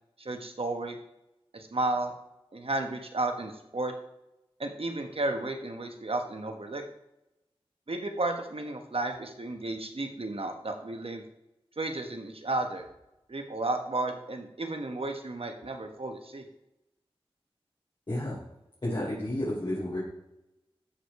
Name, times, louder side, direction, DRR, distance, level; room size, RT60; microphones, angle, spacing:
voice 1, 0.2-1.0 1.5-2.1 2.5-3.9 4.6-6.8 7.9-11.2 11.8-12.8 13.3-16.4, right 2 dB, 70° right, 5 dB, 1.3 m, -33 dB
voice 2, 18.1-18.4 18.8-20.0, left 1 dB, 50° left, -8 dB, 3.9 m, -31 dB
13.0 x 5.1 x 4.8 m, 0.90 s
wide cardioid pair, 45°, 10 cm